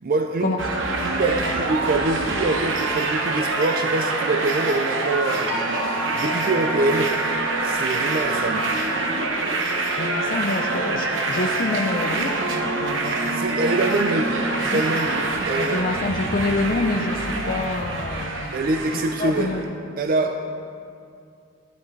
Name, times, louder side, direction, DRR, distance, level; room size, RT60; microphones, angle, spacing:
voice 1, 0.0-0.5 1.0-8.7 13.1-15.9 18.5-19.6 20.0-20.4, right 2 dB, 50° right, 5 dB, 0.4 m, -25 dB
sound 1, 0.6-19.7, right 2 dB, 80° right, 1.0 m, -25 dB
sound 2, 5.5-11.5, left 1 dB, 30° right, 1.5 m, -37 dB
voice 2, 9.9-13.4 13.8-13.9 14.5-14.8 15.5-18.6 19.2-19.6, left 2 dB, 45° left, 2 dB, 0.5 m, -27 dB
11.0 x 10.5 x 3.2 m, 2.4 s
head